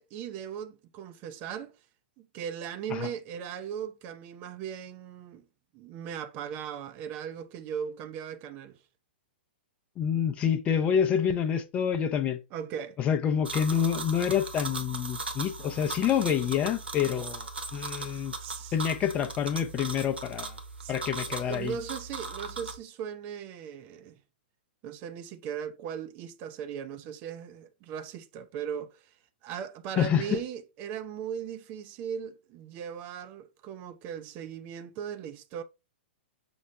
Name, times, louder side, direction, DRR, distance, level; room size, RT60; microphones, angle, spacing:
voice 1, 0.0-1.7 2.2-5.5 5.7-8.8 10.1-10.3 12.5-13.0 18.4-18.8 20.8-20.9 21.3-24.2 24.8-35.6, right 8 dB, 30° right, 0.4 m, -38 dB
voice 2, 10.0-12.4 13.0-17.5 17.7-18.3 18.7-20.5 20.9-21.7 30.0-30.2, left 8 dB, 20° left, 0.5 m, -27 dB
sound 1, 13.4-22.8, right 3 dB, 70° right, 1.0 m, -38 dB
6.0 x 2.1 x 4.0 m
figure-of-eight pair, 110°, 6 cm